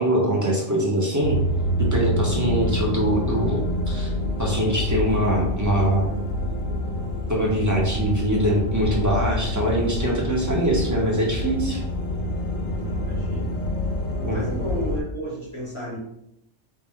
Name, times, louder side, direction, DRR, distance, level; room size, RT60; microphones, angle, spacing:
voice 1, 0.0-1.4 1.8-3.6 3.9-4.1 4.4-6.1 7.3-11.8 14.2-14.5, right 1 dB, 20° right, -3 dB, 0.5 m, -23 dB
sound 1, 1.2-15.0, left 1 dB, 80° left, 1.0 m, -27 dB
voice 2, 12.6-13.6 14.3-16.0, right 1 dB, 30° left, -2 dB, 0.7 m, -33 dB
4.4 x 2.1 x 3.5 m, 0.78 s
omnidirectional pair, 1.3 m